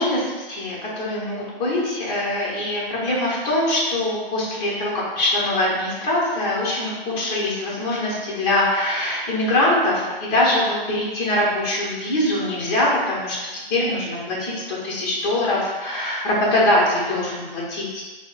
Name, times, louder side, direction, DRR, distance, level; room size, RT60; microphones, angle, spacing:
voice 1, 0.0-18.0, left 1 dB, 25° left, -6 dB, 1.0 m, -23 dB
4.6 x 2.1 x 2.4 m, 1.2 s
hypercardioid pair, 150°, 29 cm